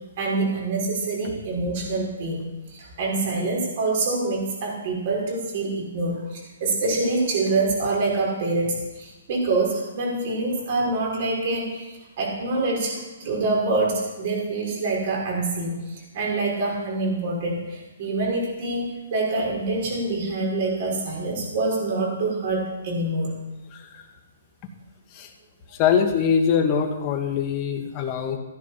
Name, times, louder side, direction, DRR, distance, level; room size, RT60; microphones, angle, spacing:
voice 1, 0.2-2.4 2.7-23.4, right 3 dB, 45° right, -2 dB, 5.9 m, -26 dB
voice 2, 23.7-24.0 25.1-25.3 25.7-28.4, left 7 dB, 25° left, 3 dB, 1.9 m, -23 dB
15.0 x 11.0 x 5.9 m, 1.1 s
hypercardioid pair, 160°, 0 cm